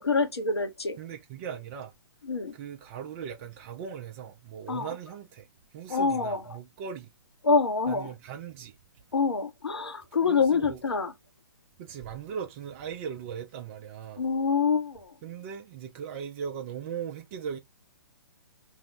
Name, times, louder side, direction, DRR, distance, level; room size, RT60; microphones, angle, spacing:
voice 1, 0.0-1.0 2.2-2.5 4.7-4.9 5.9-6.4 7.4-8.1 9.1-11.1 14.2-15.1, left 4 dB, 85° left, 0.8 m, -26 dB
voice 2, 1.0-1.9 2.5-7.1 7.9-8.8 10.2-10.8 11.8-14.3 15.2-17.6, right 7 dB, 30° right, 0.4 m, -39 dB
2.6 x 2.0 x 3.2 m
figure-of-eight pair, 130°, 13 cm